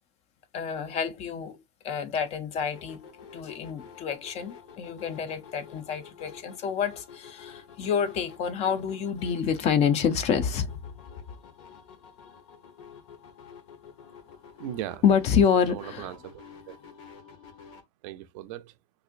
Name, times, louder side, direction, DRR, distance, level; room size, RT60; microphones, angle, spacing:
voice 1, 0.5-1.6 1.8-10.8 15.0-16.1, left 7 dB, 40° left, 0.6 m, -27 dB
sound 1, 2.7-17.8, left 7 dB, 75° left, 1.1 m, -49 dB
voice 2, 14.6-15.0 15.7-16.8 18.0-18.8, right 12 dB, 80° right, 0.5 m, -38 dB
4.1 x 2.6 x 2.4 m
supercardioid pair, 140°, 16 cm